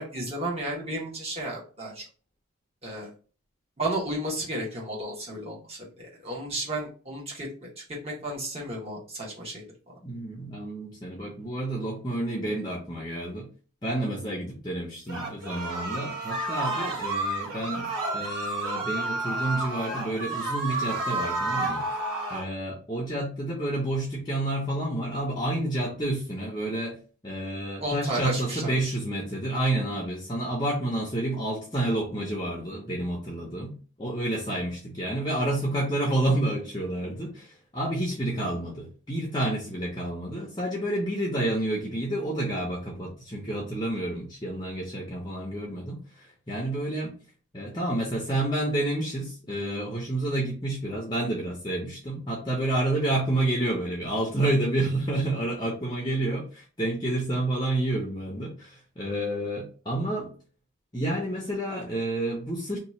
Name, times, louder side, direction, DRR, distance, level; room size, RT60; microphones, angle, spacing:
voice 1, 0.0-2.0 2.8-3.1 3.8-9.7 27.8-28.9, right 1 dB, 25° right, -4 dB, 1.1 m, -33 dB
voice 2, 10.0-13.5 13.8-21.9 22.3-27.0 27.2-47.1 47.5-60.3 60.9-62.8, right 1 dB, 20° left, -2 dB, 0.6 m, -29 dB
sound 1, 15.1-22.5, right 2 dB, 45° right, 1.5 m, -30 dB
2.8 x 2.3 x 4.2 m, 0.39 s
head